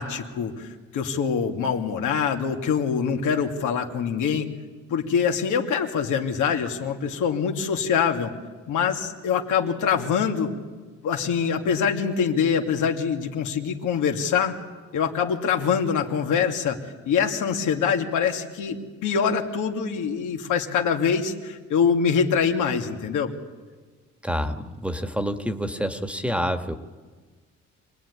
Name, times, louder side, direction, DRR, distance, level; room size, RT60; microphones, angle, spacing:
voice 1, 0.0-4.5 4.9-8.3 8.7-10.5 11.0-14.6 14.9-16.8 17.1-23.3, left 6 dB, 85° left, 3 dB, 2.7 m, -24 dB
voice 2, 24.2-26.8, equal, 5° right, 8 dB, 1.7 m, -27 dB
26.0 x 19.0 x 9.9 m, 1.4 s
cardioid pair, 90°, 30 cm